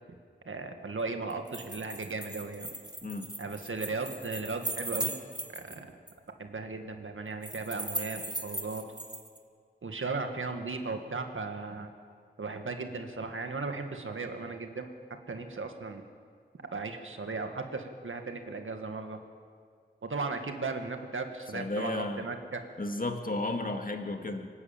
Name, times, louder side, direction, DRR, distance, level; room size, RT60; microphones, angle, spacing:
voice 1, 0.5-2.7 3.4-5.1 5.5-5.9 6.4-8.8 9.8-11.9 12.4-14.9 15.3-16.0 16.7-19.2 20.0-22.6, right 3 dB, 85° right, 5 dB, 1.8 m, -36 dB
sound 1, 1.3-5.8 6.1-6.2 7.4-9.4, right 1 dB, 20° right, 2.1 m, -38 dB
voice 2, 21.5-22.3 22.8-24.5, left 2 dB, 45° left, 4 dB, 2.1 m, -33 dB
25.5 x 12.5 x 8.8 m, 2.1 s
wide cardioid pair, 70°, 20 cm